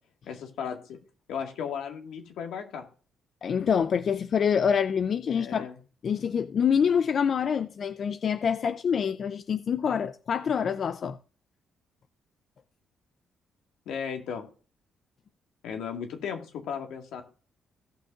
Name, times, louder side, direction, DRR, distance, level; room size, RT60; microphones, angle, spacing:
voice 1, 0.3-0.8 1.3-2.8 5.3-5.8 13.9-14.4 15.6-17.2, left 7 dB, 80° left, 2.0 m, -35 dB
voice 2, 3.4-5.7 6.0-11.2, left 7 dB, 55° left, 0.5 m, -26 dB
17.5 x 5.8 x 2.5 m
cardioid pair, 90°, 0 cm